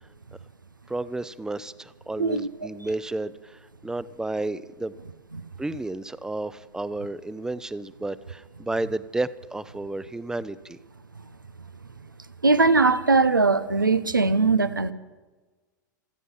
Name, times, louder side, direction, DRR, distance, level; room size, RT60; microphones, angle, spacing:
voice 1, 0.9-4.9 5.6-10.8, right 2 dB, 5° right, 16 dB, 0.7 m, -32 dB
voice 2, 2.2-2.5 5.3-5.4 12.4-14.9, right 3 dB, 85° right, 14 dB, 0.9 m, -20 dB
27.0 x 9.6 x 5.6 m, 1.3 s
figure-of-eight pair, 90°, 10 cm